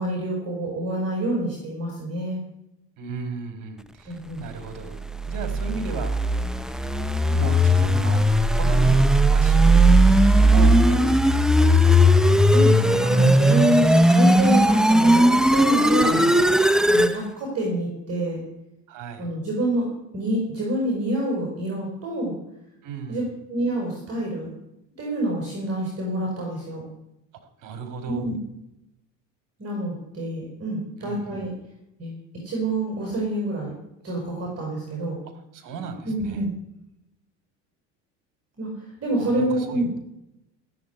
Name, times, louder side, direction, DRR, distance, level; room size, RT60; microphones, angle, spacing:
voice 1, 0.0-2.4 4.1-4.4 10.5-11.1 12.5-16.2 16.9-18.4 19.2-19.9 20.1-22.4 23.1-24.5 25.0-26.8 28.1-28.4 29.6-31.5 32.0-32.1 32.4-33.7 34.0-35.2 36.0-36.5 38.6-40.0, right 1 dB, 40° right, -1 dB, 5.8 m, -27 dB
voice 2, 3.0-5.0 5.3-6.1 7.0-8.2 8.6-9.9 10.3-11.2 11.7-12.5 16.0-16.4 18.9-19.3 22.8-23.3 27.6-28.3 31.0-31.4 35.5-36.4 39.2-40.0, right 5 dB, 55° right, 8 dB, 3.2 m, -36 dB
sound 1, 5.0-17.2, equal, ahead, 0.8 m, -17 dB
16.0 x 7.9 x 9.8 m, 0.89 s
supercardioid pair, 90°, 36 cm